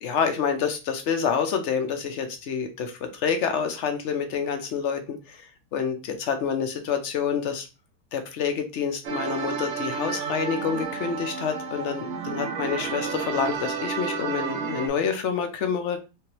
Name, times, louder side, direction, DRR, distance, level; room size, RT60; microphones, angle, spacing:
voice 1, 0.0-5.4 5.7-7.7 8.1-16.0, left 6 dB, 65° left, 7 dB, 0.7 m, -27 dB
sound 1, 9.0-14.9, right 5 dB, 75° right, 0.6 m, -31 dB
3.4 x 3.2 x 2.9 m, 0.29 s
omnidirectional pair, 1.8 m